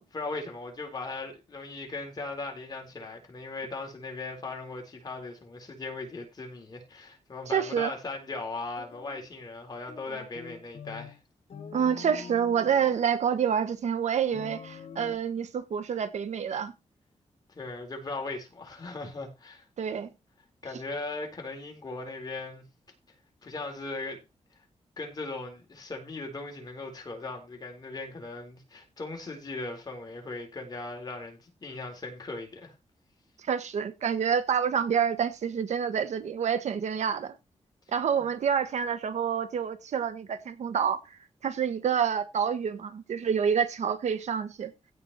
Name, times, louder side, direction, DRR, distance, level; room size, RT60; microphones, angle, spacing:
voice 1, 0.1-11.2 17.5-19.6 20.6-22.6 23.4-24.2 25.0-32.7, left 3 dB, 35° left, 4.2 m, -38 dB
voice 2, 7.5-7.9 11.7-16.7 19.8-20.1 33.5-37.3 37.9-41.2 41.4-44.7, right 7 dB, 80° right, 1.5 m, -28 dB
sound 1, 8.8-9.3 9.9-11.2 11.5-13.1 14.3-15.2, left 6 dB, 70° left, 1.8 m, -44 dB
16.5 x 5.5 x 4.3 m
wide cardioid pair, 160°, 12 cm